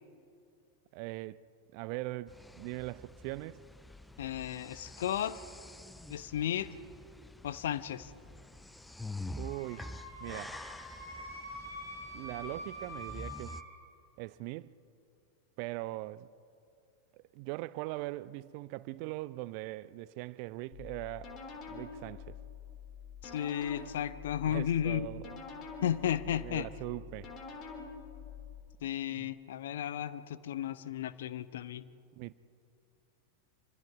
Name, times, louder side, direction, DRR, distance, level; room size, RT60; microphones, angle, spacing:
voice 1, 0.9-1.4 1.7-3.6 9.4-9.9 10.2-10.6 12.1-13.6 14.2-14.7 15.6-16.3 17.1-21.3 21.7-22.4 24.4-25.2 26.4-27.3 29.1-29.3 32.1-32.4, right 19 dB, 45° right, 0.5 m, -41 dB
sound 1, 2.3-13.6, left 1 dB, 5° left, 0.6 m, -47 dB
voice 2, 4.2-5.4 6.1-6.7 7.4-8.1 23.2-25.1 25.8-26.7 28.8-31.8, left 10 dB, 60° left, 0.8 m, -34 dB
Wind instrument woodwind instrument, 9.4-13.6, equal, 90° left, 5.2 m, -45 dB
sound 2, 20.7-28.6, left 5 dB, 35° left, 3.8 m, -46 dB
27.0 x 25.0 x 4.8 m
figure-of-eight pair, 90°, 0 cm